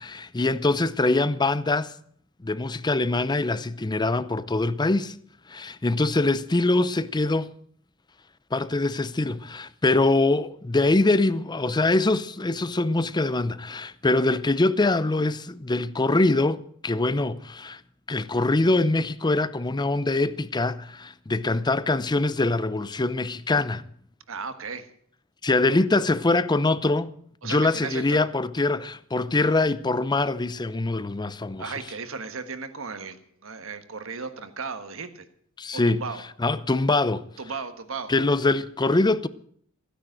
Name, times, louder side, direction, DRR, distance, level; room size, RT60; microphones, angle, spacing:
voice 1, 0.0-1.9 2.4-5.1 5.5-7.5 8.5-17.8 18.1-23.8 25.4-27.1 27.4-31.6 35.6-36.0 36.4-37.2 38.1-39.3, left 2 dB, 20° left, 0.6 m, -23 dB
voice 2, 24.3-24.9 27.4-28.2 31.6-35.2 35.7-36.2 37.4-38.1, right 5 dB, 70° right, 1.5 m, -35 dB
15.5 x 10.0 x 7.7 m
head